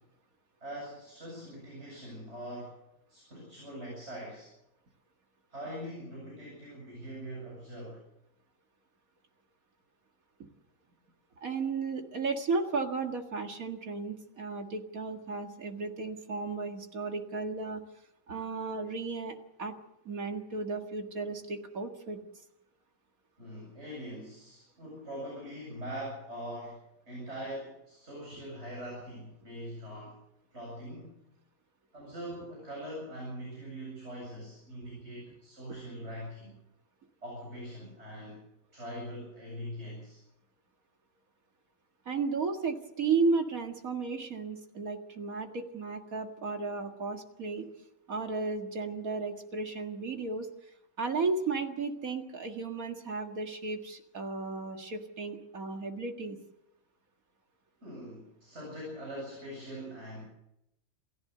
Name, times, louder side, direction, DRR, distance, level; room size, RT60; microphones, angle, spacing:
voice 1, 0.6-2.8 3.1-4.5 5.5-8.0 23.4-26.8 27.1-30.2 30.5-31.2 31.9-36.6 37.2-38.5 38.7-40.2 57.8-60.2, equal, 50° right, -3 dB, 8.4 m, -42 dB
voice 2, 11.4-17.8 18.3-19.7 20.1-22.2 42.1-47.7 48.1-50.5 51.0-56.4, right 4 dB, 75° right, 4 dB, 2.3 m, -34 dB
28.5 x 14.5 x 6.8 m, 0.84 s
omnidirectional pair, 1.5 m